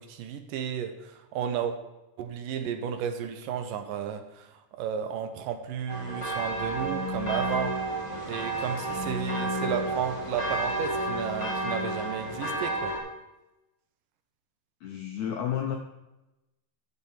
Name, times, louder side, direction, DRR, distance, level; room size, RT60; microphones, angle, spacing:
voice 1, 0.0-1.8 2.2-7.8 8.3-12.9, right 8 dB, 80° right, 7 dB, 2.3 m, -33 dB
sound 1, 5.9-13.0, right 1 dB, 20° left, 0.7 m, -31 dB
voice 2, 14.8-15.8, left 9 dB, 80° left, 3 dB, 1.6 m, -31 dB
10.5 x 6.9 x 4.3 m, 0.98 s
omnidirectional pair, 4.1 m